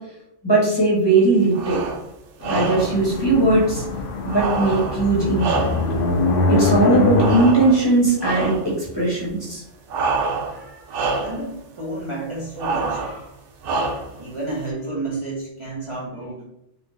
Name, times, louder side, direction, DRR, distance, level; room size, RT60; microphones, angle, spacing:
voice 1, 0.4-1.8 2.5-3.8 4.2-5.7 6.5-9.6, right 2 dB, 20° left, -6 dB, 1.0 m, -19 dB
sound 1, 1.5-2.0 2.4-3.0 4.3-6.1 7.2-7.9 8.2-8.7 9.9-10.6 10.9-11.4 12.6-13.2 13.6-14.2, right 3 dB, 60° right, 0.6 m, -26 dB
sound 2, 2.4-7.5, left 3 dB, 55° left, 0.7 m, -22 dB
voice 2, 10.4-13.4 14.1-16.4, right 2 dB, 30° right, -6 dB, 0.7 m, -32 dB
4.1 x 2.0 x 3.3 m, 0.81 s
omnidirectional pair, 1.2 m